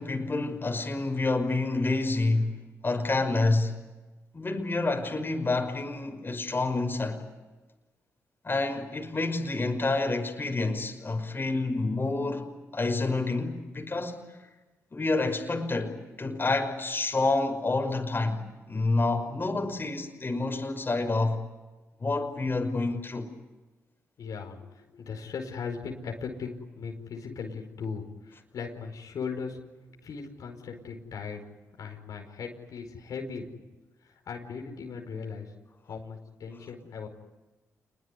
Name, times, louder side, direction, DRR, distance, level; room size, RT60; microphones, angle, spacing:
voice 1, 0.0-3.8 4.3-7.2 8.4-12.5 12.7-14.2 14.9-18.4 18.7-21.4 22.0-23.3, left 3 dB, 35° left, 5.5 m, -28 dB
voice 2, 24.2-29.6 30.0-31.4 31.8-33.5 34.0-35.5 35.8-37.1, left 5 dB, 75° left, 5.0 m, -38 dB
28.0 x 21.5 x 9.7 m
supercardioid pair, 55°, 6 cm